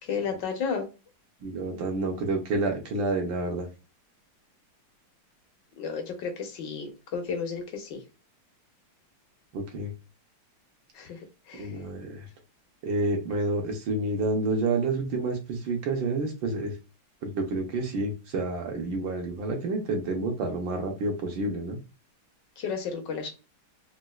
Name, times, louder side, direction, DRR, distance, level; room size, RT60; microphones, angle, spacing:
voice 1, 0.0-0.9 5.8-8.0 10.9-11.2 11.5-11.7 22.6-23.3, left 5 dB, 65° left, 4 dB, 1.3 m, -32 dB
voice 2, 1.4-3.6 9.5-9.9 11.6-12.0 12.8-16.7 17.2-21.8, right 2 dB, 70° right, 2 dB, 1.5 m, -29 dB
4.2 x 2.3 x 2.3 m, 0.29 s
omnidirectional pair, 2.3 m